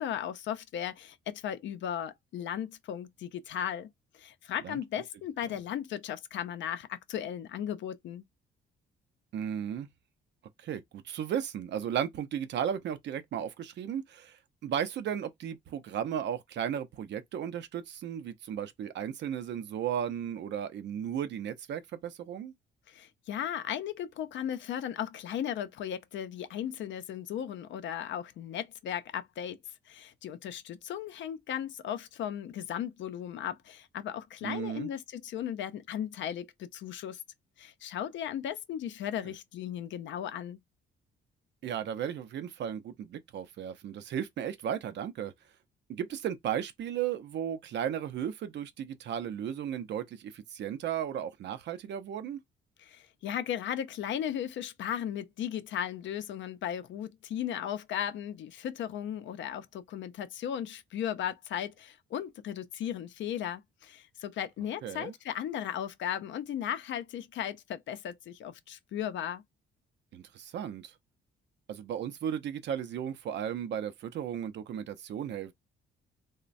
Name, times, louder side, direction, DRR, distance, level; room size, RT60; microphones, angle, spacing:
voice 1, 0.0-8.2 22.9-29.6 29.9-37.2 37.6-40.6 52.8-69.4, left 10 dB, 70° left, 0.5 m, -36 dB
voice 2, 9.3-9.9 10.6-22.5 34.4-34.9 39.2-39.3 41.6-45.3 45.9-52.4 64.8-65.1 70.1-70.9 71.7-75.5, right 9 dB, 60° right, 0.5 m, -35 dB
3.0 x 2.1 x 2.5 m
cardioid pair, 90°, 20 cm